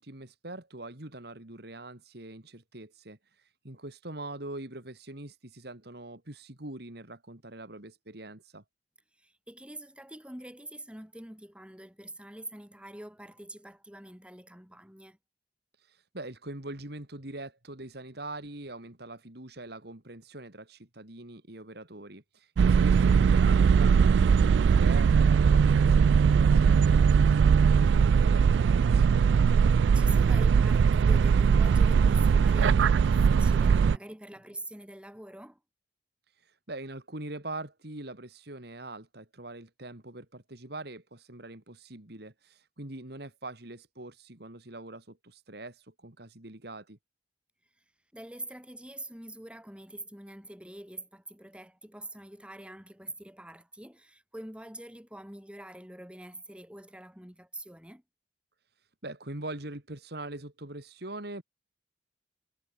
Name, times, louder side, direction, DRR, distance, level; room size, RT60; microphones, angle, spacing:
voice 1, 0.0-8.6 15.8-29.1 36.3-47.0 58.7-61.4, right 2 dB, 65° right, 3.2 m, -43 dB
voice 2, 9.2-15.2 29.5-35.6 48.1-58.0, right 1 dB, 5° right, 5.0 m, -45 dB
sound 1, 22.6-34.0, right 6 dB, 80° right, 0.3 m, -21 dB
head